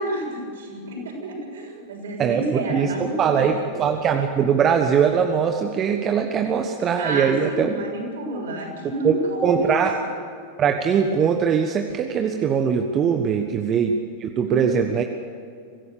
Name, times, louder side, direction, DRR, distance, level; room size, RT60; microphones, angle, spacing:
voice 1, 0.0-3.5 7.0-10.1 13.3-13.5 14.5-14.9, right 1 dB, 60° right, 0 dB, 6.7 m, -30 dB
voice 2, 2.2-7.7 9.0-9.1 9.4-9.9 10.6-15.0, right 7 dB, 30° right, 5 dB, 1.3 m, -21 dB
25.0 x 16.0 x 6.8 m, 2.3 s
figure-of-eight pair, 90°, 0 cm